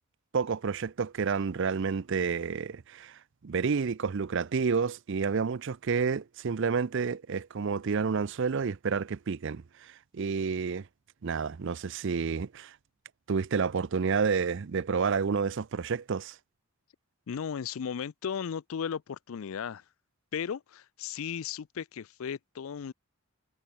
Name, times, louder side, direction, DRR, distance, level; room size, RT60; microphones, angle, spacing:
voice 1, 0.3-10.9 11.2-12.7 13.3-16.4, right 5 dB, 55° right, 0.5 m, -30 dB
voice 2, 17.3-19.8 20.3-22.9, left 7 dB, 65° left, 0.4 m, -35 dB
head